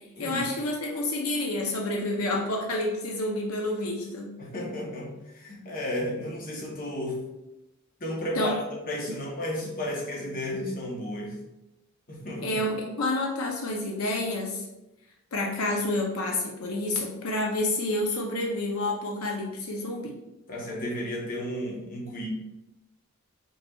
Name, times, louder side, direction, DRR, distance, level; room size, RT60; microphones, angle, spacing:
voice 1, 0.2-4.3 8.3-8.5 12.4-14.7 15.3-20.2, left 2 dB, 80° left, 0 dB, 0.6 m, -29 dB
voice 2, 4.4-7.2 8.0-8.6 8.9-11.3 12.1-12.6 20.5-22.3, left 1 dB, 40° left, -2 dB, 0.9 m, -33 dB
5.0 x 3.2 x 2.3 m, 0.93 s
head